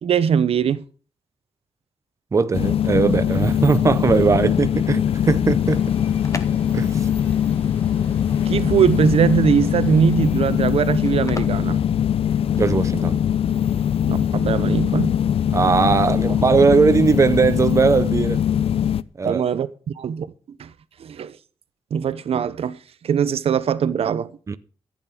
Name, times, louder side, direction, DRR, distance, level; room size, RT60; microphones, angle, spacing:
voice 1, 0.0-0.8 8.5-11.8 14.0-15.2 19.2-19.7 20.0-20.3 20.6-20.7 21.0-21.4 21.9-22.8 23.0-24.3, right 7 dB, 75° right, 0.8 m, -21 dB
voice 2, 2.3-5.8 6.7-7.1 12.6-13.2 15.5-18.4 19.2-19.4 24.5-24.6, right 4 dB, 30° right, 0.7 m, -19 dB
sound 1, 2.5-19.0, left 9 dB, 70° left, 0.6 m, -21 dB
Water, 5.6-10.7, equal, 15° left, 5.9 m, -45 dB
sound 2, 5.8-12.8, left 3 dB, 30° left, 1.2 m, -40 dB
14.5 x 8.8 x 6.1 m
wide cardioid pair, 140°, 10 cm